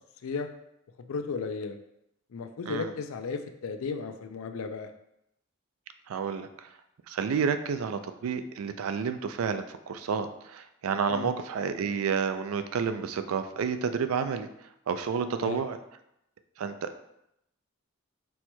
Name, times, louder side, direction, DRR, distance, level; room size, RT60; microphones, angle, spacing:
voice 1, 1.1-1.8 2.3-4.9 11.1-11.3 15.4-15.6, left 4 dB, 80° left, 8 dB, 0.4 m, -34 dB
voice 2, 6.1-6.7 7.1-14.5 14.9-15.8 16.6-17.0, right 6 dB, 85° right, 9 dB, 0.4 m, -30 dB
4.4 x 2.2 x 4.3 m, 0.81 s
head